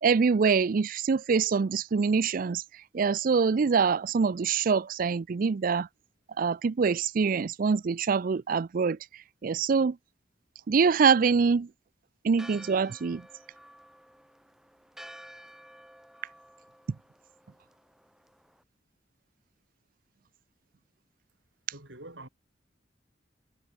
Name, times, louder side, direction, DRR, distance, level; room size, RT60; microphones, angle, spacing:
voice 1, 0.0-2.6 2.9-5.9 6.4-9.0 9.4-10.0 10.7-11.7 12.2-13.2, right 5 dB, 50° right, 0.4 m, -24 dB
Church bell, 12.4-18.6, equal, 5° right, 3.2 m, -52 dB
voice 2, 21.7-22.3, right 2 dB, 75° right, 6.8 m, -45 dB
head